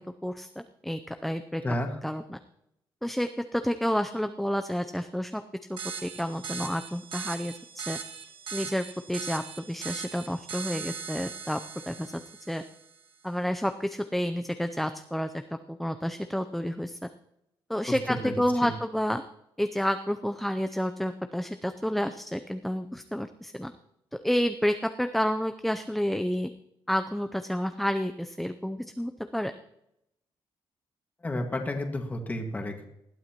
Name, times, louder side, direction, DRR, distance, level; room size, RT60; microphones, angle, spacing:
voice 1, 0.0-1.6 2.0-2.4 3.0-5.4 5.7-8.0 8.5-11.6 11.9-12.2 12.5-12.6 13.2-17.0 17.7-19.2 19.6-23.7 24.2-26.5 26.9-29.5, equal, ahead, 7 dB, 0.5 m, -30 dB
voice 2, 1.6-2.0 17.9-18.3 18.6-18.7 31.2-32.8, left 1 dB, 20° left, 3 dB, 1.8 m, -31 dB
sound 1, 5.8-12.9, right 6 dB, 70° right, 1.5 m, -39 dB
20.0 x 12.5 x 3.0 m, 0.82 s
cardioid pair, 135°, 9 cm